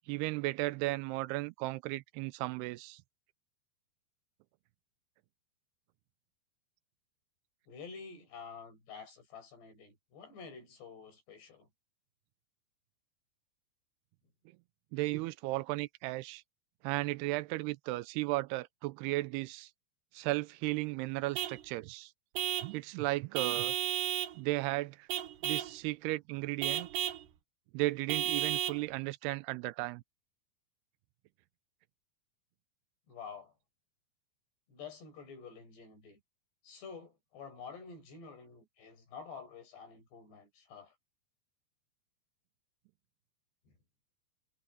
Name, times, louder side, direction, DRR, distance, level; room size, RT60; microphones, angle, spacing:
voice 1, 0.1-3.0 14.9-16.4 16.8-19.7 20.1-22.1 22.6-23.7 24.3-25.1 25.4-26.9 27.7-30.0, right 20 dB, 85° right, 2.6 m, -35 dB
voice 2, 7.7-11.7 33.1-33.5 34.7-36.2 36.6-40.9, left 5 dB, 85° left, 8.7 m, -49 dB
Vehicle horn car horn honking / Truck, 21.3-21.6 22.3-22.8 23.3-24.4 25.1-25.8 26.6-27.2 28.1-28.8, right 11 dB, 70° right, 2.3 m, -33 dB
omnidirectional pair, 4.7 m